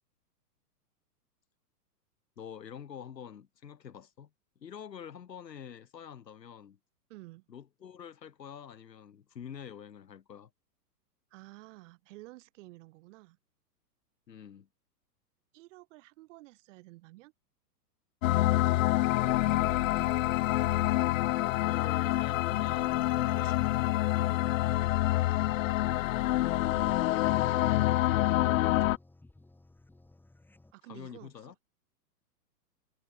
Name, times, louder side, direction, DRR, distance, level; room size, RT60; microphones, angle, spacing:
voice 1, 2.4-4.3 4.6-6.8 7.5-10.5 14.3-14.7 18.3-18.6 21.4-24.0 24.9-25.1 30.9-31.5, left 8 dB, 85° left, 6.1 m, -46 dB
voice 2, 7.1-7.5 11.3-13.4 15.5-17.3 19.2-20.4 23.2-23.8 26.5-29.0 30.7-31.3, right 20 dB, 45° right, 3.8 m, -52 dB
sound 1, 18.2-29.0, left 16 dB, 55° left, 0.5 m, -27 dB
sound 2, 22.2-30.7, left 2 dB, 5° left, 3.7 m, -55 dB
hypercardioid pair, 135°, 49 cm